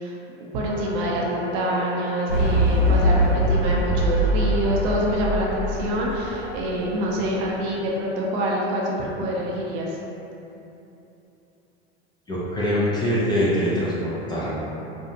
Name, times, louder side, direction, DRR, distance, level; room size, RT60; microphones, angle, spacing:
voice 1, 0.0-10.0, right 1 dB, 50° right, -3 dB, 0.6 m, -26 dB
sound 1, 0.6-6.8, equal, 25° right, 0.9 m, -38 dB
sound 2, 2.3-6.8, equal, 70° left, 0.8 m, -22 dB
voice 2, 12.3-14.6, equal, 15° left, -8 dB, 0.5 m, -23 dB
2.6 x 2.3 x 2.7 m, 2.9 s
hypercardioid pair, 90°, 33 cm